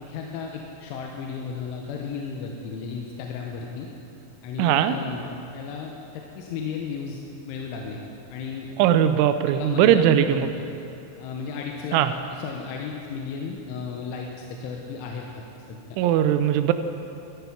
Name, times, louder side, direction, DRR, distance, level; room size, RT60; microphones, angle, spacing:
voice 1, 0.0-3.9 4.4-8.0 8.3-8.7 9.5-10.6 11.2-16.0, left 5 dB, 90° left, 0 dB, 3.3 m, -34 dB
voice 2, 4.6-4.9 8.8-10.5 11.9-12.1 16.0-16.7, right 10 dB, 90° right, 10 dB, 3.0 m, -19 dB
13.5 x 10.5 x 5.9 m, 2.7 s
omnidirectional pair, 5.5 m